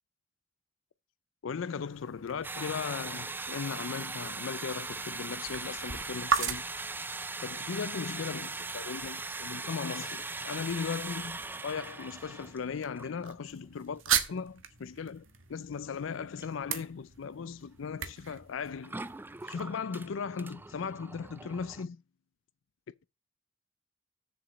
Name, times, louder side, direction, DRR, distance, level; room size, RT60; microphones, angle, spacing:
voice 1, 1.4-6.6 7.4-11.4 11.6-14.0 14.3-19.0 19.5-22.0, left 6 dB, 85° left, 0.5 m, -37 dB
sound 1, 1.6-19.5, right 8 dB, 90° right, 1.3 m, -39 dB
sound 2, 2.4-12.6 13.0-13.3 13.6-13.7 16.4-16.5 18.8-21.8, right 3 dB, 10° right, 0.4 m, -40 dB
7.1 x 5.0 x 7.1 m
head